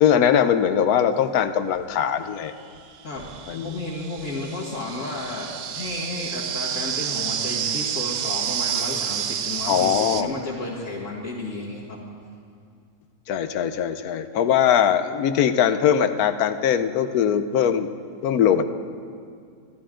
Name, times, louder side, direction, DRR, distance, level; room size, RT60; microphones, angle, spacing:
voice 1, 0.0-2.5 3.5-3.8 9.7-10.3 13.3-17.9 18.2-18.7, left 9 dB, 90° left, 10 dB, 1.2 m, -21 dB
sound 1, 1.8-1.9 2.8-10.2, right 9 dB, 80° right, 1.2 m, -29 dB
voice 2, 3.6-12.0, left 2 dB, 60° left, -8 dB, 2.3 m, -32 dB
27.0 x 12.5 x 3.8 m, 2.4 s
omnidirectional pair, 1.5 m